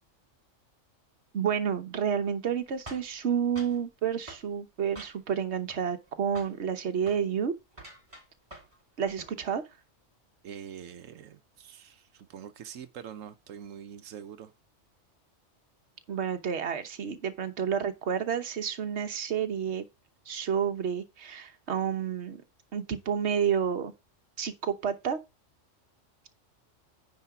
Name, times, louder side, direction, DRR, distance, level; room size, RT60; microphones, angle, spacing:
voice 1, 1.3-7.5 9.0-9.6 16.1-19.8 20.3-22.4 22.7-23.9 24.4-25.2, right 7 dB, 60° right, 1.3 m, -30 dB
sound 1, 2.9-3.8 4.3-4.5 5.0-5.4 5.7-6.1 6.4-6.6 7.0-7.2 7.7-8.8 9.1-9.4, right 1 dB, 25° right, 3.4 m, -47 dB
voice 2, 10.4-14.5, right 8 dB, 90° right, 1.1 m, -44 dB
9.8 x 4.1 x 5.9 m
omnidirectional pair, 1.3 m